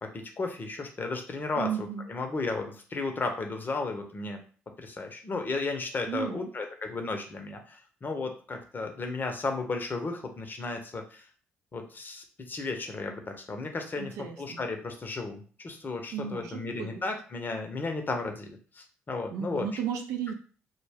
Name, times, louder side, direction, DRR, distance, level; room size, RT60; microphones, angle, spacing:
voice 1, 0.0-4.4 4.8-11.3 11.7-19.7, left 3 dB, 35° left, 4 dB, 0.7 m, -34 dB
voice 2, 1.6-2.1 6.1-6.5 13.9-14.6 16.1-17.0 19.3-20.3, right 8 dB, 75° right, 6 dB, 0.4 m, -34 dB
2.2 x 2.1 x 3.4 m, 0.40 s
hypercardioid pair, 50°, 5 cm